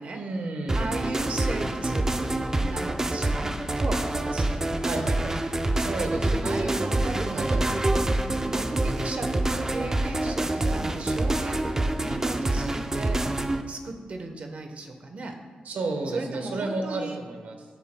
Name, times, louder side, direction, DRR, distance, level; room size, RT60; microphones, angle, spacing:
voice 1, 0.1-0.9 4.8-5.4 5.7-7.6 15.6-17.6, right 2 dB, 85° right, 4 dB, 1.1 m, -32 dB
sound 1, 0.7-13.6, right 2 dB, 20° right, 0.4 m, -26 dB
voice 2, 0.7-2.1 2.6-4.7 5.9-7.7 8.2-13.3 13.7-15.4 16.1-17.2, right 2 dB, 50° right, 5 dB, 1.0 m, -36 dB
14.0 x 7.5 x 2.2 m, 1.5 s
wide cardioid pair, 125°, 3 cm